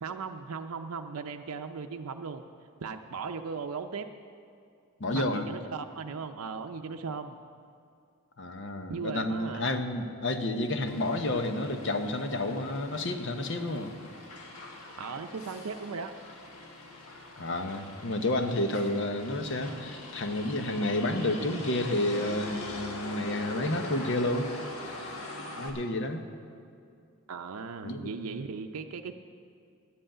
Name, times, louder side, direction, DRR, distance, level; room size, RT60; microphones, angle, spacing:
voice 1, 0.0-2.4 2.8-4.1 5.1-7.4 8.9-9.7 15.0-16.1 27.3-29.1, right 5 dB, 85° right, 6 dB, 0.5 m, -37 dB
voice 2, 5.0-5.5 8.4-13.9 17.4-24.5 25.0-25.1 25.6-26.3 27.8-28.1, left 1 dB, 55° left, 7 dB, 0.9 m, -30 dB
Motor vehicle (road), 10.9-25.7, left 1 dB, 85° left, 1.7 m, -42 dB
11.5 x 7.9 x 8.7 m, 2.3 s
head